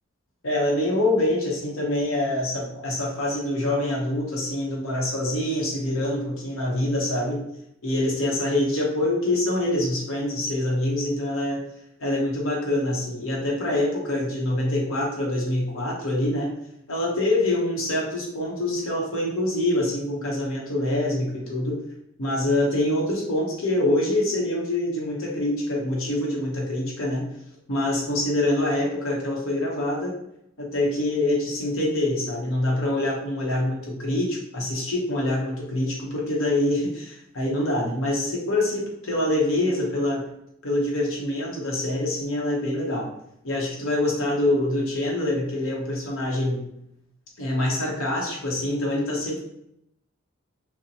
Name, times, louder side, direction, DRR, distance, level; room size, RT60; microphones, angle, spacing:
voice 1, 0.4-7.4 7.8-11.6 12.0-16.5 16.9-21.8 22.2-27.2 27.7-30.1 30.6-40.2 40.6-43.1 43.4-46.7 47.4-49.4, left 1 dB, 75° left, -3 dB, 0.8 m, -25 dB
2.8 x 2.1 x 3.9 m, 0.78 s
head